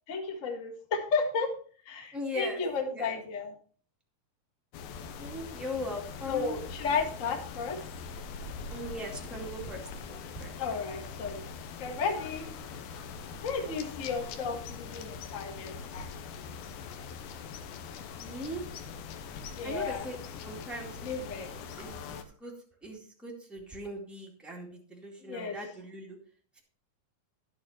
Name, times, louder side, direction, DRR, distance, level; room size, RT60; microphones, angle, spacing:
voice 1, 0.1-1.5 1.8-3.5 6.3-7.9 10.6-11.4 11.8-12.5 13.4-16.2 19.6-20.0 21.0-21.5 25.2-25.6, left 5 dB, 60° left, 3 dB, 0.8 m, -33 dB
voice 2, 2.1-2.6 2.9-3.2 5.2-6.5 8.7-10.5 18.1-18.6 19.6-20.2 20.4-21.2 21.5-22.5 22.8-26.2, equal, ahead, -2 dB, 1.2 m, -40 dB
sound 1, 4.7-22.2, left 5 dB, 80° left, 2.8 m, -42 dB
11.0 x 8.8 x 4.3 m, 0.42 s
omnidirectional pair, 4.4 m